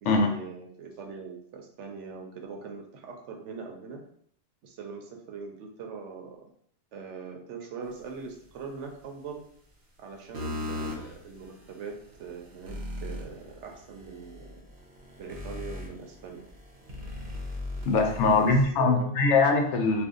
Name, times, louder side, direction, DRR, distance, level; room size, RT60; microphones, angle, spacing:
voice 1, 0.0-4.0 4.6-6.5 6.9-9.4 10.0-11.9 12.2-14.6 15.2-16.5 17.9-19.1, right 5 dB, 85° right, 2 dB, 1.0 m, -42 dB
sound 1, 10.3-18.7, left 2 dB, 55° right, 0.8 m, -39 dB
voice 2, 17.9-20.0, left 3 dB, 80° left, 3 dB, 0.9 m, -22 dB
2.6 x 2.4 x 3.6 m, 0.64 s
omnidirectional pair, 1.2 m